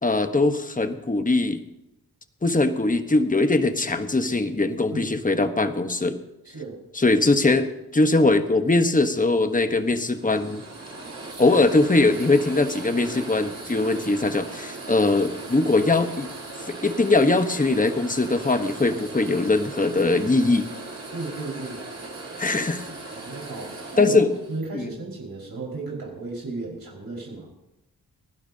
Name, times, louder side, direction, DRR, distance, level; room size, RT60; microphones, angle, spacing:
voice 1, 0.0-1.6 2.4-6.2 6.9-10.6 11.4-16.3 16.6-20.7 22.4-22.9 24.0-24.3 24.7-24.9, left 2 dB, 20° left, 8 dB, 1.2 m, -21 dB
sound 1, 9.2-24.7, right 2 dB, 45° right, 4.8 m, -38 dB
voice 2, 21.1-21.8 23.1-24.2 24.5-27.5, right 3 dB, 65° right, -3 dB, 5.3 m, -34 dB
30.0 x 12.0 x 2.9 m, 0.93 s
wide cardioid pair, 70°, 37 cm